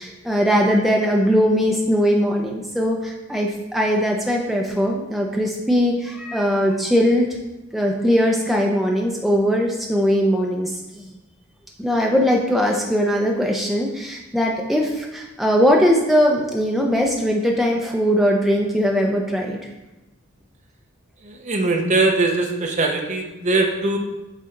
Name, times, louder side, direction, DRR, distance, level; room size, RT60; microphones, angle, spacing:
voice 1, 0.0-7.3 7.7-11.1 11.8-19.6, equal, ahead, -1 dB, 0.5 m, -20 dB
voice 2, 21.3-24.0, right 3 dB, 35° right, 2 dB, 0.7 m, -21 dB
8.2 x 4.0 x 3.8 m, 1.0 s
head